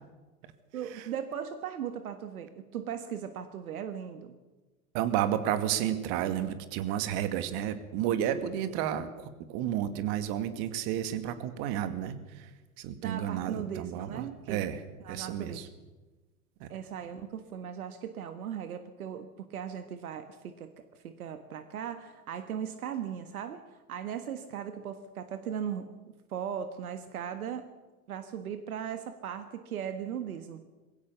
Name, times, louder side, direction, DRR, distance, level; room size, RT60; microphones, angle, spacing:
voice 1, 0.7-4.4 13.0-14.6 15.0-15.7 16.7-23.6 23.9-25.9 26.3-27.7 28.1-30.6, right 8 dB, 70° right, 10 dB, 1.7 m, -38 dB
voice 2, 4.9-12.5 12.8-14.8 15.1-15.7 16.6-16.7, right 10 dB, 45° right, 11 dB, 2.3 m, -31 dB
22.0 x 16.5 x 7.1 m, 1.2 s
hypercardioid pair, 95°, 45 cm